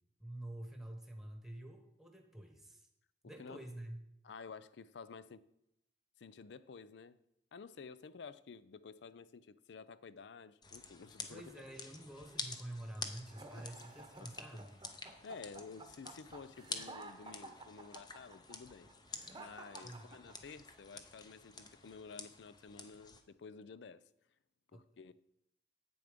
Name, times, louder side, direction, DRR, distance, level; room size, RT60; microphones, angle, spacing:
voice 1, 0.2-2.9 3.2-4.0 11.3-14.8 19.8-20.1 24.7-24.8, right 1 dB, ahead, 1.2 m, -48 dB
voice 2, 3.4-3.7 4.2-5.4 6.2-7.2 7.5-11.4 13.5-13.6 14.2-14.7 15.2-18.9 19.4-24.1 24.7-25.1, left 5 dB, 70° left, 0.4 m, -52 dB
sound 1, 10.6-23.2, left 4 dB, 25° left, 0.7 m, -49 dB
sound 2, 13.3-20.7, right 3 dB, 25° right, 0.9 m, -53 dB
8.4 x 6.9 x 5.1 m
head